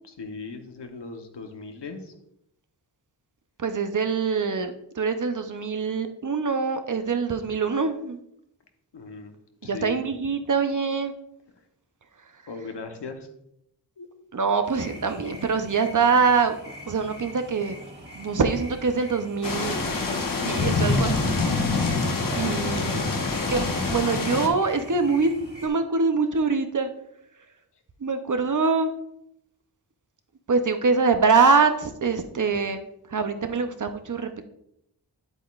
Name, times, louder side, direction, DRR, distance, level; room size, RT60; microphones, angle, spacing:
voice 1, 0.0-2.1 8.9-9.3 9.6-10.0 12.5-13.3 14.0-14.1 22.3-22.4, left 4 dB, 75° left, 5 dB, 1.1 m, -38 dB
voice 2, 3.6-8.2 9.6-11.1 14.3-16.5 16.9-17.7 18.1-19.8 20.4-21.4 22.3-23.0 23.5-26.9 28.0-28.9 30.5-32.8 33.1-34.5, right 4 dB, 45° right, 7 dB, 0.7 m, -24 dB
sound 1, 14.6-25.7, equal, 25° right, 1.8 m, -44 dB
sound 2, 19.4-24.5, left 3 dB, 50° left, 1.0 m, -25 dB
9.2 x 8.1 x 2.4 m, 0.77 s
wide cardioid pair, 110°, 43 cm